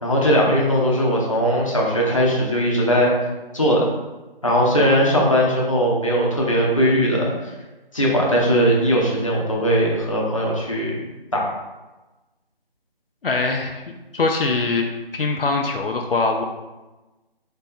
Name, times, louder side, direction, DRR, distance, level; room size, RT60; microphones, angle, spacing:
voice 1, 0.0-3.1 3.5-3.9 4.4-7.3 7.9-11.0 11.3-11.5, equal, 35° left, -3 dB, 0.7 m, -19 dB
voice 2, 13.2-13.8 14.1-14.9 15.1-16.4, left 3 dB, 70° left, 3 dB, 0.5 m, -22 dB
4.2 x 2.9 x 3.6 m, 1.1 s
figure-of-eight pair, 175°, 30 cm